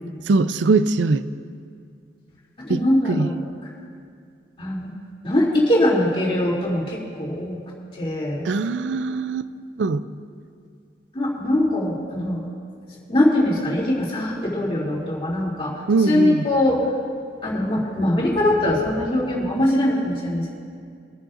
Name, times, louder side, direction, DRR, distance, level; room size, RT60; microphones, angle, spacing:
voice 1, 0.3-1.2 2.7-3.3 8.4-9.5 9.8-10.0 15.9-16.5, right 3 dB, 80° right, 13 dB, 0.4 m, -21 dB
voice 2, 2.6-3.3 4.6-4.9 5.2-7.6 7.9-8.5 11.1-12.4 13.1-16.9 17.4-20.6, left 1 dB, 30° left, -5 dB, 2.8 m, -22 dB
24.0 x 10.0 x 2.6 m, 2.2 s
head